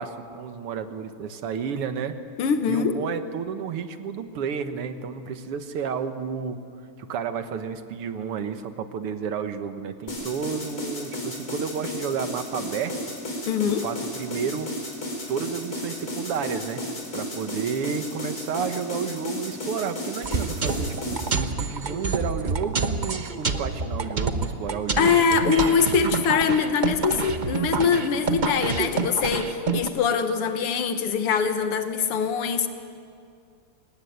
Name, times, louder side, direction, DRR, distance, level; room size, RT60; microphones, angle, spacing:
voice 1, 0.0-2.2 2.7-6.6 7.0-13.0 13.6-14.7 15.3-16.9 17.1-25.8, right 6 dB, 85° right, 8 dB, 2.2 m, -31 dB
voice 2, 2.4-2.9 13.5-13.9 25.0-32.7, left 6 dB, 85° left, 8 dB, 2.3 m, -23 dB
sound 1, 10.1-21.3, left 1 dB, 40° left, 4.5 m, -33 dB
sound 2, 20.2-29.9, right 4 dB, 45° right, 0.5 m, -28 dB
24.0 x 19.0 x 9.5 m, 2.3 s
omnidirectional pair, 2.4 m